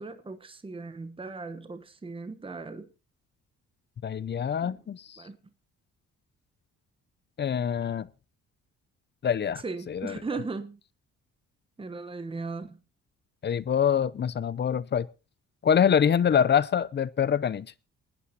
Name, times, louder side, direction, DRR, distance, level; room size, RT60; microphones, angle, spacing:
voice 1, 0.0-2.9 4.6-4.8 5.2-5.4 9.6-10.8 11.8-12.8, right 3 dB, 15° right, 1.1 m, -37 dB
voice 2, 4.0-5.2 7.4-8.1 9.2-10.2 13.4-15.1 15.6-17.7, left 8 dB, 35° left, 0.6 m, -25 dB
27.0 x 9.5 x 2.8 m
cardioid pair, 90°, 30 cm